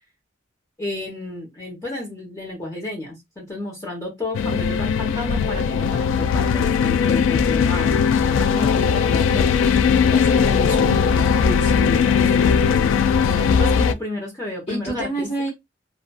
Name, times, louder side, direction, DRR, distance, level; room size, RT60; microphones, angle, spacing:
voice 1, 0.8-8.0 8.4-10.0 10.3-11.2 12.1-15.5, left 2 dB, 15° left, 0.9 m, -32 dB
sound 1, 4.3-13.9, left 6 dB, 75° left, 0.3 m, -19 dB
voice 2, 10.1-12.9 14.7-15.5, right 1 dB, 35° left, 1.1 m, -30 dB
2.5 x 2.3 x 2.2 m
head